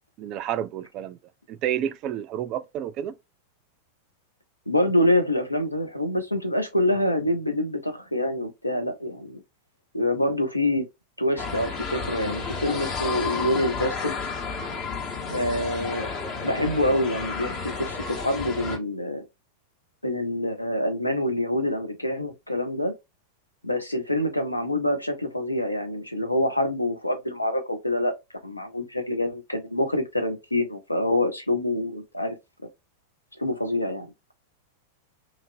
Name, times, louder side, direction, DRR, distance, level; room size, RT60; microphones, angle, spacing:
voice 1, 0.2-1.2 1.5-3.2, right 10 dB, 40° right, 0.3 m, -30 dB
voice 2, 4.7-9.4 9.9-10.8 11.2-14.1 15.3-16.1 16.4-19.2 20.0-22.9 23.6-28.1 28.4-32.4 33.4-34.1, left 1 dB, 85° left, 0.7 m, -26 dB
sound 1, 11.4-18.8, left 4 dB, 40° left, 0.9 m, -32 dB
3.0 x 2.5 x 2.6 m
figure-of-eight pair, 90°, 0 cm